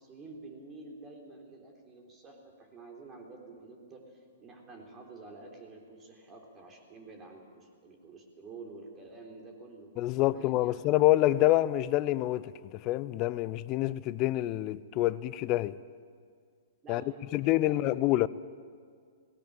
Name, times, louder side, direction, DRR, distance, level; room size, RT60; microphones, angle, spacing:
voice 1, 0.0-9.9 10.3-10.9 16.8-18.2, right 3 dB, 25° right, 3.8 m, -49 dB
voice 2, 10.0-15.8 16.9-17.0 17.3-18.3, left 16 dB, 35° left, 0.7 m, -27 dB
18.5 x 17.5 x 8.9 m
hypercardioid pair, 115°, 0 cm